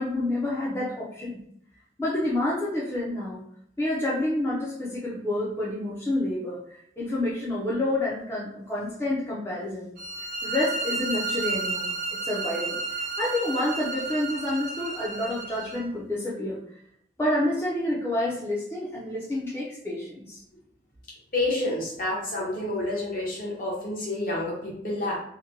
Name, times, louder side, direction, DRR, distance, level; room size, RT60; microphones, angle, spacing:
voice 1, 0.0-1.4 2.0-3.4 3.8-9.9 10.2-16.6 17.2-20.4, left 1 dB, 15° left, -7 dB, 0.5 m, -29 dB
sound 1, 10.0-15.8, right 3 dB, 50° right, 0.7 m, -32 dB
voice 2, 21.3-25.2, left 2 dB, 50° left, -4 dB, 0.9 m, -29 dB
2.9 x 2.1 x 2.6 m, 0.70 s
head